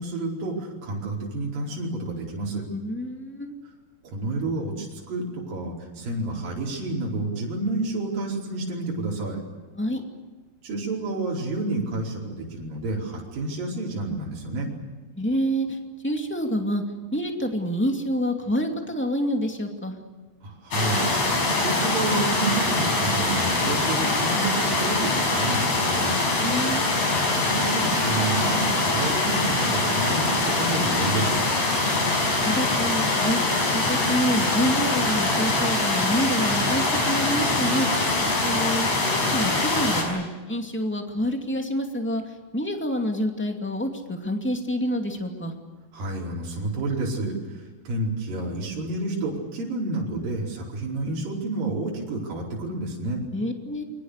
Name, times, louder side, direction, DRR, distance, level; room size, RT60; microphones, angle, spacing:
voice 1, 0.0-2.6 4.1-9.4 10.6-14.7 20.4-26.2 27.3-30.3 30.6-31.4 45.9-47.3 47.8-53.2, right 2 dB, 55° right, -3 dB, 6.5 m, -29 dB
voice 2, 2.7-3.5 9.7-10.0 15.2-15.8 16.0-16.8 17.1-19.9 26.4-26.8 32.4-33.4 33.7-37.9 38.4-38.9 39.3-42.2 42.5-45.5 53.3-53.8, equal, 5° left, 3 dB, 1.1 m, -27 dB
sound 1, 20.7-40.0, left 2 dB, 40° left, 6.8 m, -23 dB
29.0 x 24.5 x 6.7 m, 1.3 s
omnidirectional pair, 4.8 m